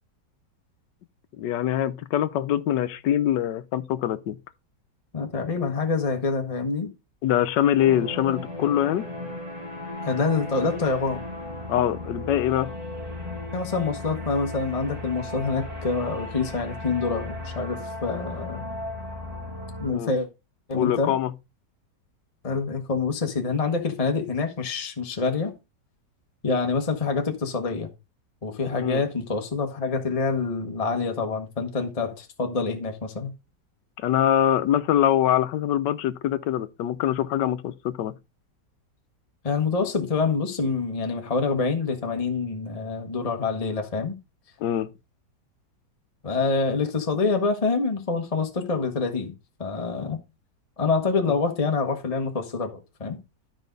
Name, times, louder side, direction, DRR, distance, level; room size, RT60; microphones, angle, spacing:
voice 1, 1.4-4.4 7.2-9.1 11.7-12.7 19.9-20.1 20.7-21.3 28.8-29.0 34.0-38.1 44.6-44.9, left 11 dB, 75° left, 1.3 m, -23 dB
voice 2, 5.1-6.9 10.0-11.2 13.5-18.7 19.8-20.3 20.7-21.1 22.4-25.5 26.4-27.9 28.4-33.3 39.4-44.2 46.2-49.3 49.6-50.2 50.8-53.2, left 4 dB, 25° left, 1.1 m, -26 dB
sound 1, 7.8-19.9, left 1 dB, 20° right, 3.0 m, -36 dB
12.5 x 5.1 x 3.9 m
omnidirectional pair, 1.9 m